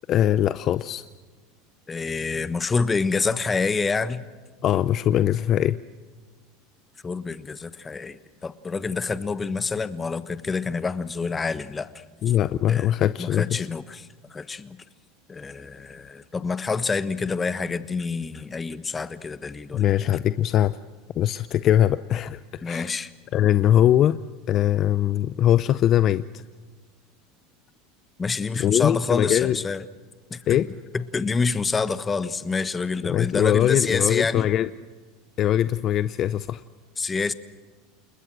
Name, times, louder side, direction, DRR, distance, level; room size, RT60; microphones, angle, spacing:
voice 1, 0.1-1.0 4.6-5.8 12.2-13.7 19.7-20.8 21.2-22.9 23.3-24.2 24.5-26.2 28.6-29.6 30.5-30.7 33.0-34.7 35.4-36.6, left 11 dB, 40° left, 14 dB, 0.6 m, -21 dB
voice 2, 1.9-4.2 7.0-11.9 12.7-12.9 13.2-14.8 15.3-19.9 22.6-23.1 28.2-29.8 30.3-30.6 30.9-34.5 37.0-37.3, left 4 dB, 20° left, 13 dB, 1.2 m, -27 dB
29.5 x 20.5 x 6.2 m, 1.4 s
supercardioid pair, 115°, 0 cm